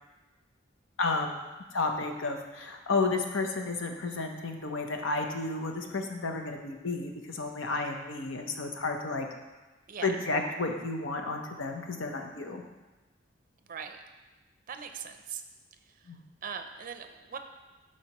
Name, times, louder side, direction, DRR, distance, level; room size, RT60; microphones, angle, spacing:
voice 1, 1.0-1.4 1.7-9.3 10.0-12.6 16.1-16.2, left 3 dB, 90° left, 3 dB, 0.8 m, -32 dB
voice 2, 9.9-10.2 13.7-14.0 14.7-15.4 15.9-16.1 16.4-17.4, right 7 dB, 45° right, 7 dB, 0.5 m, -40 dB
12.0 x 4.4 x 3.0 m, 1.2 s
head